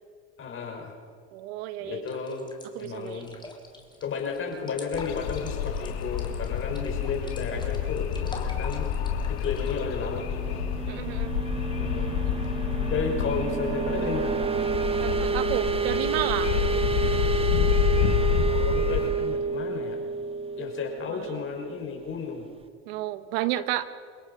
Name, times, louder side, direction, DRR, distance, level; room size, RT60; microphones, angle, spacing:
voice 1, 0.4-1.0 1.8-2.5 2.8-3.4 4.0-8.9 9.3-10.6 11.7-12.2 12.9-14.5 16.4-16.6 18.1-20.0 20.6-22.5, left 5 dB, 40° left, 1 dB, 6.3 m, -33 dB
voice 2, 1.3-2.0 2.7-3.4 10.9-11.3 15.0-16.6 17.0-17.4 21.1-21.4 22.9-23.8, right 13 dB, 80° right, 13 dB, 1.2 m, -32 dB
sound 1, 2.1-9.8, left 2 dB, 15° left, 3.6 m, -46 dB
sound 2, 4.9-19.1, left 8 dB, 85° left, 2.3 m, -28 dB
sound 3, 9.7-22.2, right 5 dB, 20° right, 1.2 m, -30 dB
29.5 x 18.0 x 5.8 m, 2.1 s
supercardioid pair, 95°, 31 cm